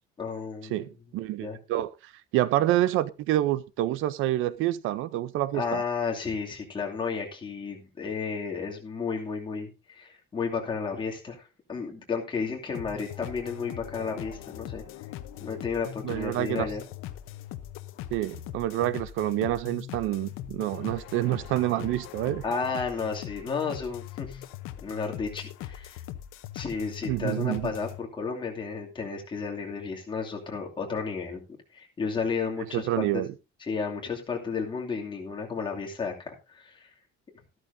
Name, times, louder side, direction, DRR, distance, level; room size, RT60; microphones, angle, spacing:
voice 1, 0.2-0.9 1.4-1.6 5.5-11.4 11.7-14.8 15.4-16.8 22.4-24.4 24.8-26.0 26.5-31.4 31.7-33.2 33.6-36.9, left 5 dB, 25° left, 2.6 m, -32 dB
voice 2, 0.7-1.9 2.3-5.8 16.0-16.7 18.1-22.4 27.1-27.7 32.7-33.3, right 14 dB, 75° right, 0.7 m, -27 dB
sound 1, 12.7-28.0, left 12 dB, 85° left, 0.9 m, -41 dB
14.0 x 12.5 x 2.7 m
cardioid pair, 160°, 21 cm